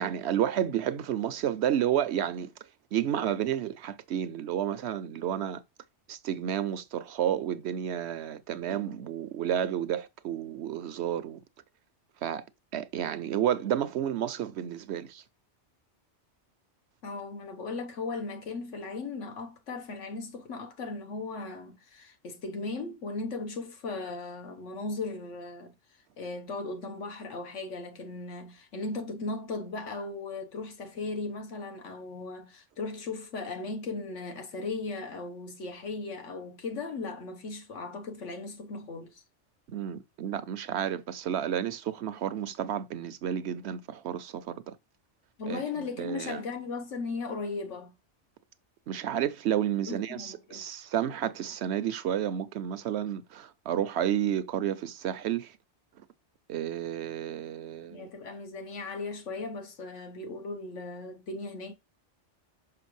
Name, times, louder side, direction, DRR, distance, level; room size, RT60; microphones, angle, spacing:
voice 1, 0.0-2.5 2.9-5.6 6.1-11.4 12.2-12.4 12.7-15.2 39.7-44.8 45.5-46.4 48.9-55.5 56.5-58.1, right 10 dB, 70° right, 0.8 m, -31 dB
voice 2, 17.0-25.7 26.2-39.2 45.4-47.9 49.9-50.6 57.9-61.7, left 3 dB, 85° left, 1.5 m, -37 dB
5.8 x 5.8 x 3.1 m
omnidirectional pair, 1.2 m